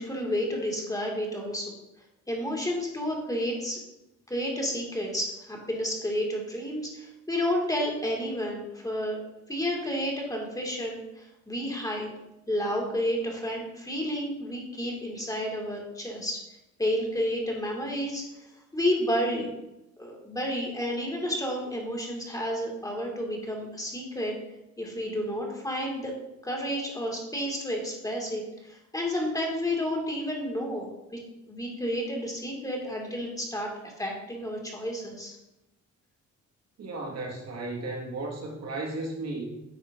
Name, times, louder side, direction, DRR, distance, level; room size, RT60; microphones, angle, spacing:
voice 1, 0.0-1.7 2.3-3.8 4.3-9.2 9.5-12.1 12.5-16.4 16.8-18.2 18.7-19.5 20.0-24.3 24.8-26.1 26.4-28.4 28.7-31.2 31.5-33.7 34.0-35.4, equal, 10° left, 0 dB, 2.1 m, -31 dB
voice 2, 36.8-39.5, right 2 dB, 60° right, -1 dB, 1.8 m, -34 dB
10.0 x 6.4 x 2.6 m, 0.94 s
cardioid pair, 90°, 30 cm